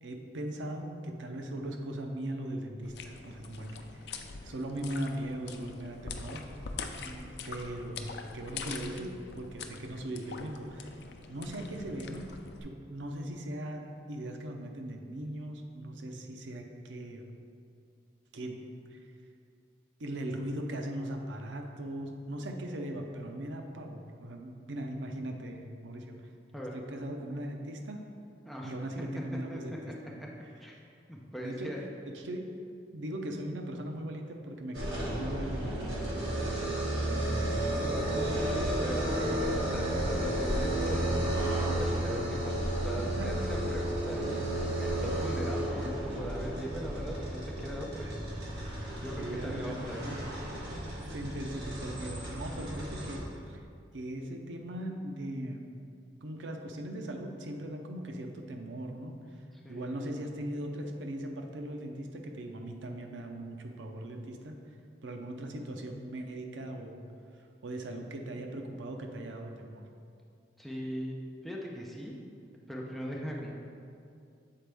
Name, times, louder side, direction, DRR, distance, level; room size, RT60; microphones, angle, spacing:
voice 1, 0.0-6.4 6.8-7.0 7.5-10.9 11.3-12.3 12.6-17.3 18.3-18.6 18.9-19.1 20.0-26.2 26.7-28.0 28.6-30.3 31.4-31.8 32.0-32.5 32.9-36.8 37.1-37.7 39.2-39.3 43.2-43.3 48.0-48.2 48.8-50.2 51.1-53.6 53.9-55.6 56.2-59.4 59.7-64.6 65.0-67.0 67.4-69.8, right 1 dB, 85° right, 3 dB, 0.6 m, -39 dB
sound 1, 2.8-12.6, left 4 dB, 65° left, 0.4 m, -44 dB
voice 2, 31.1-31.8 38.0-48.1 49.0-50.2 59.6-60.1 70.6-71.2 71.4-72.1 72.7-73.6, equal, ahead, -3 dB, 0.6 m, -40 dB
sound 2, 34.7-53.2, right 1 dB, 65° right, 1.5 m, -32 dB
7.5 x 4.2 x 3.4 m, 2.4 s
head